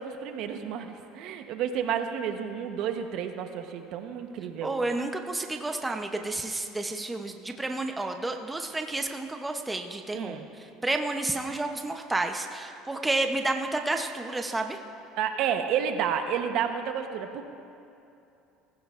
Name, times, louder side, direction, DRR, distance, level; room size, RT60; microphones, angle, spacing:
voice 1, 0.0-4.8 10.1-10.5 15.2-17.4, right 8 dB, 60° right, 6 dB, 0.9 m, -31 dB
voice 2, 4.6-10.4 10.8-14.8, right 2 dB, 10° right, 4 dB, 0.6 m, -30 dB
19.5 x 15.5 x 2.5 m, 2.7 s
cardioid pair, 135°, 0 cm